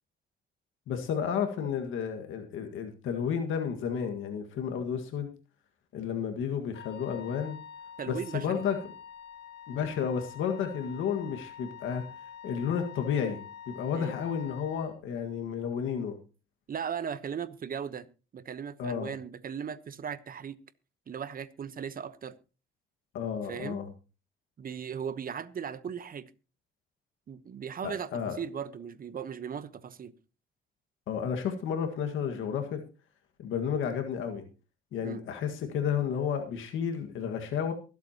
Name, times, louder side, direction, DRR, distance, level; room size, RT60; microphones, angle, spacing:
voice 1, 0.9-5.3 5.9-7.6 8.1-8.8 9.7-12.1 12.4-16.2 18.8-19.1 23.1-23.9 27.8-28.4 31.1-32.8 33.4-34.4 34.9-37.7, left 7 dB, 80° left, 1.8 m, -32 dB
Wind instrument woodwind instrument, 6.7-14.9, left 8 dB, 60° left, 2.1 m, -47 dB
voice 2, 8.0-8.6 13.9-14.1 16.7-18.1 18.3-20.6 21.1-22.4 23.5-23.8 24.6-26.3 27.3-30.1 35.0-35.2, right 7 dB, 45° right, 1.0 m, -37 dB
23.5 x 8.2 x 2.9 m
cardioid pair, 90°, 20 cm